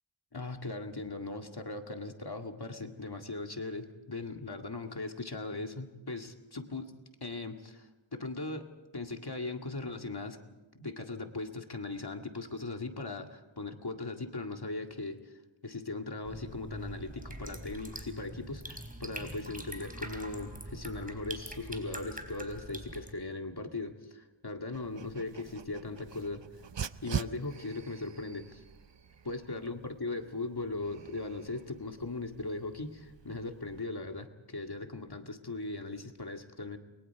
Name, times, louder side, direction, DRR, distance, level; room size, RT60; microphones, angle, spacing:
voice 1, 0.3-6.9 7.2-8.7 8.9-10.4 10.7-15.3 15.6-26.4 27.0-28.6 29.3-36.8, left 3 dB, 50° left, 4 dB, 2.1 m, -39 dB
sound 1, 16.2-23.1, right 1 dB, 15° right, 4.2 m, -44 dB
Dog, 24.7-33.8, right 8 dB, 60° right, 0.7 m, -44 dB
29.5 x 22.5 x 4.8 m, 1.1 s
wide cardioid pair, 40°, 49 cm